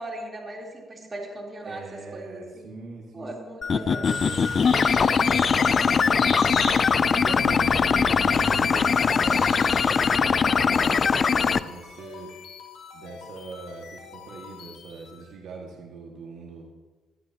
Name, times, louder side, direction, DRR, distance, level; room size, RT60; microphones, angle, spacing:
voice 1, 0.0-1.8 2.1-2.7 3.1-4.1, right 1 dB, 30° right, -2 dB, 3.6 m, -38 dB
voice 2, 1.6-3.3 3.7-6.2 6.9-12.3 12.9-16.7, right 3 dB, 75° right, 0 dB, 1.9 m, -41 dB
sound 1, 3.6-11.6, left 6 dB, 45° left, 0.4 m, -21 dB
sound 2, 4.0-10.7, left 3 dB, 60° left, 5.2 m, -34 dB
sound 3, 10.3-15.3, left 6 dB, 85° left, 3.4 m, -46 dB
20.5 x 12.5 x 2.9 m, 1.3 s
cardioid pair, 90°, 0 cm